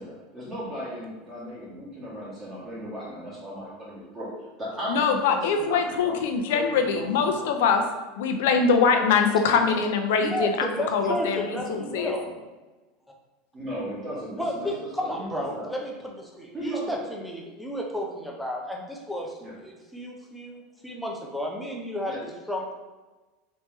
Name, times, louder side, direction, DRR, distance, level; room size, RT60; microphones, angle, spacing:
voice 1, 0.0-4.3 4.6-6.2 6.5-7.7 9.5-9.9 11.1-12.3 13.5-14.7 15.0-15.7 16.5-17.0 19.4-19.5 22.1-22.2, equal, 25° right, -8 dB, 1.3 m, -37 dB
voice 2, 4.9-7.8 8.2-12.1, left 5 dB, 80° left, 5 dB, 0.5 m, -23 dB
voice 3, 10.2-12.2 14.4-22.7, equal, ahead, -1 dB, 0.5 m, -32 dB
3.2 x 3.0 x 3.3 m, 1.2 s
supercardioid pair, 145°, 0 cm